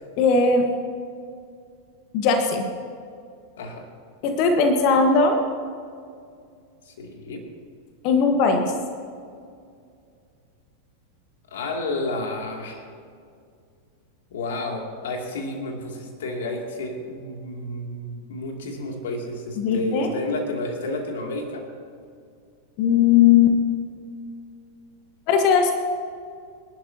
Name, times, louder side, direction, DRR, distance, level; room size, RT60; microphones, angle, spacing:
voice 1, 0.2-0.7 2.1-2.7 4.2-5.4 8.0-8.7 19.6-20.1 22.8-23.6 25.3-25.7, left 5 dB, 45° left, 5 dB, 1.5 m, -18 dB
voice 2, 6.9-7.4 11.5-12.8 14.3-21.7, left 2 dB, 60° left, 1 dB, 2.7 m, -31 dB
27.5 x 12.0 x 2.9 m, 2.3 s
figure-of-eight pair, 90°, 0 cm